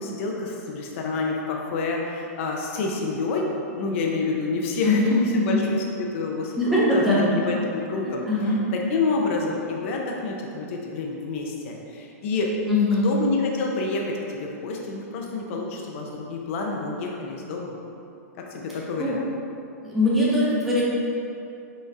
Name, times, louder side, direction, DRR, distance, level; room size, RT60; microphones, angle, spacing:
voice 1, 0.0-8.2 8.7-12.5 13.0-17.7 18.4-19.2, left 3 dB, 50° left, -1 dB, 0.6 m, -28 dB
voice 2, 4.8-5.6 6.6-7.4 8.0-8.6 12.6-13.1 19.0-19.2 19.8-20.8, left 1 dB, ahead, -9 dB, 0.9 m, -22 dB
5.3 x 3.1 x 2.4 m, 2.6 s
hypercardioid pair, 140°, 9 cm